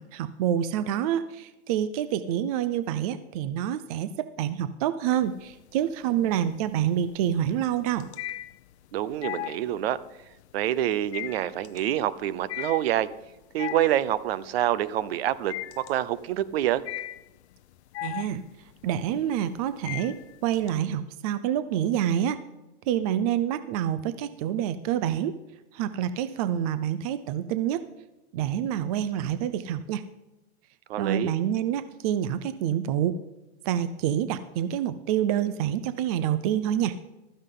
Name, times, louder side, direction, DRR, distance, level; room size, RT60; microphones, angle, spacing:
voice 1, 0.0-8.1 18.0-18.4 18.8-20.2 20.4-22.4 22.9-25.4 25.7-27.8 28.3-30.0 31.0-33.2 33.6-37.0, right 10 dB, 35° right, 13 dB, 0.5 m, -27 dB
sound 1, 5.2-5.8 6.2-20.7, left 15 dB, 70° left, 0.7 m, -38 dB
voice 2, 8.9-10.0 10.5-13.1 13.5-16.8 30.9-31.3, right 12 dB, 60° right, 18 dB, 0.8 m, -27 dB
15.5 x 13.5 x 3.8 m, 1.0 s
supercardioid pair, 170°, 34 cm